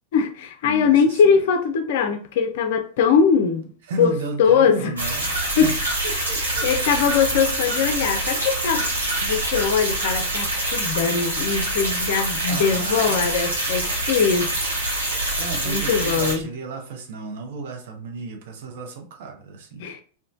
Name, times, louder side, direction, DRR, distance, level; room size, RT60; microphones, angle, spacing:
voice 1, 0.1-3.7 4.0-4.1 4.4-4.9 5.6-5.7 6.6-8.9 9.2-14.5 15.7-16.5 19.8-20.0, left 6 dB, 55° left, 0.4 m, -21 dB
voice 2, 0.6-1.4 3.9-6.7 12.5-13.2 14.0-14.5 15.4-19.8, right 4 dB, 55° right, 0.6 m, -34 dB
sound 1, 5.0-16.3, right 1 dB, 75° right, 0.9 m, -25 dB
3.0 x 2.1 x 2.5 m
figure-of-eight pair, 90°, 0 cm